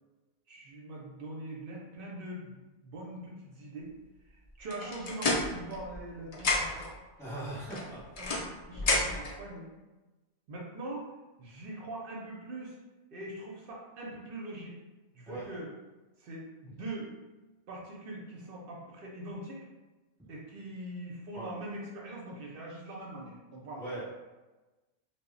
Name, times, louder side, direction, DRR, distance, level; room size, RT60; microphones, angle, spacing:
voice 1, 0.5-3.9 4.3-6.8 8.2-9.7 10.5-11.1 11.4-12.8 13.1-14.7 15.1-15.7 16.2-17.1 17.7-19.7 20.3-23.9, right 1 dB, 60° right, -2 dB, 0.6 m, -42 dB
sound 1, 4.7-6.1 6.3-6.9 7.7-9.4, left 2 dB, 65° left, 0.3 m, -31 dB
voice 2, 7.2-8.2 15.3-15.4 21.3-21.5 23.8-24.1, right 1 dB, 5° left, -8 dB, 0.8 m, -39 dB
2.0 x 2.0 x 3.6 m, 1.2 s
omnidirectional pair, 1.2 m